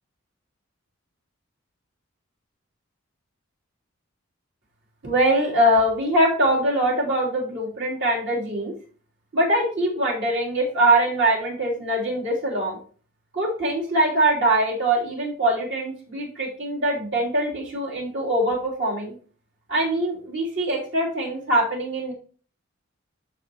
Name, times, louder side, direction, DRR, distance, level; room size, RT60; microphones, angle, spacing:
voice 1, 5.0-8.7 9.3-12.8 13.3-19.1 19.7-22.1, right 1 dB, 60° right, -3 dB, 3.2 m, -23 dB
13.5 x 5.0 x 3.0 m, 0.41 s
head